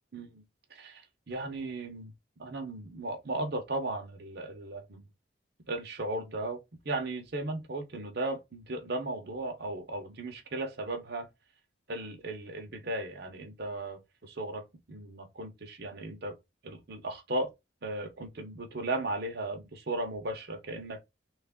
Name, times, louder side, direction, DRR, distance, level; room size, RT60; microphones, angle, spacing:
voice 1, 0.1-0.4 0.7-2.1 2.4-5.1 5.7-11.3 11.9-16.4 16.6-17.5 17.8-21.0, right 2 dB, 60° right, 0.8 m, -36 dB
3.2 x 2.4 x 3.5 m
head